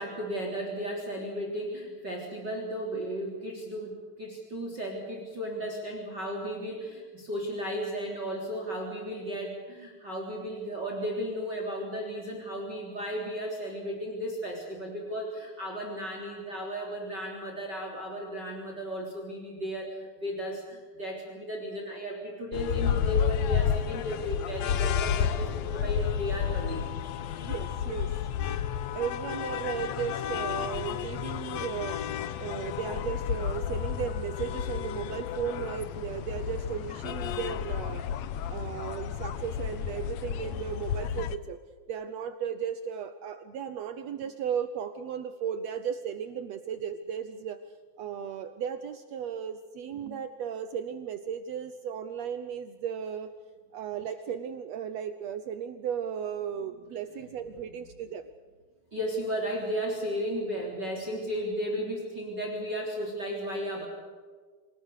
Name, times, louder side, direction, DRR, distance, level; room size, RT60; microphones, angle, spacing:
voice 1, 0.0-26.9 57.7-57.8 58.9-63.9, equal, 30° right, 1 dB, 4.0 m, -34 dB
sound 1, 22.5-41.4, left 9 dB, 75° left, 1.6 m, -31 dB
voice 2, 27.4-28.1 28.9-32.0 32.4-38.0 38.5-41.6 41.9-47.6 48.0-53.3 53.7-58.3, right 8 dB, 80° right, 10 dB, 1.5 m, -35 dB
27.0 x 19.5 x 6.6 m, 1.5 s
omnidirectional pair, 4.2 m